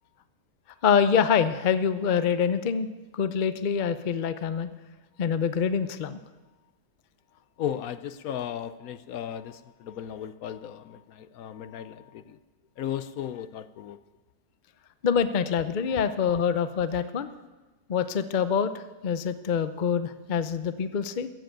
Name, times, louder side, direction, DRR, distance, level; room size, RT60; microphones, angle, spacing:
voice 1, 0.8-2.9 3.1-4.7 5.2-6.2 15.0-17.3 17.9-18.7 19.0-21.3, left 7 dB, 50° left, 11 dB, 0.6 m, -25 dB
voice 2, 7.6-12.4 12.8-14.0 16.1-16.2 16.9-17.0, left 10 dB, 70° left, 13 dB, 1.0 m, -36 dB
15.0 x 7.7 x 9.1 m, 1.2 s
omnidirectional pair, 1.7 m